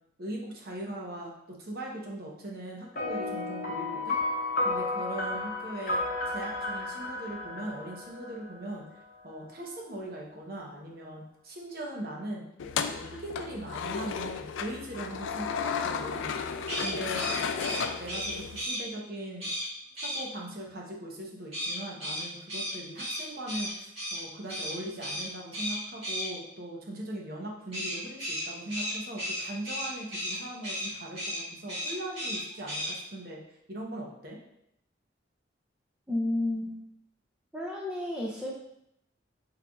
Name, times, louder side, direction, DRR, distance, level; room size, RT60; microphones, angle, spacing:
voice 1, 0.2-4.2 4.6-6.0 6.3-8.8 9.2-12.5 12.9-16.4 16.8-17.2 17.7-19.5 20.0-33.4 33.7-34.4, right 1 dB, 50° right, -2 dB, 0.8 m, -40 dB
sound 1, 3.0-8.7, left 2 dB, 45° left, 0.7 m, -32 dB
sound 2, 12.6-18.6, left 6 dB, 90° left, 0.3 m, -33 dB
sound 3, 16.6-18.8 19.4-19.7 20.0-20.2 21.5-24.2 24.5-24.7 25.0-25.3 25.5-26.3 27.7-30.4 30.6-30.9 31.1-31.4 31.7-32.4 32.7-32.9, equal, 30° right, 1.7 m, -34 dB
voice 2, 36.1-36.8 37.5-38.5, left 1 dB, 5° right, -3 dB, 0.5 m, -31 dB
6.0 x 3.4 x 2.3 m, 0.80 s
head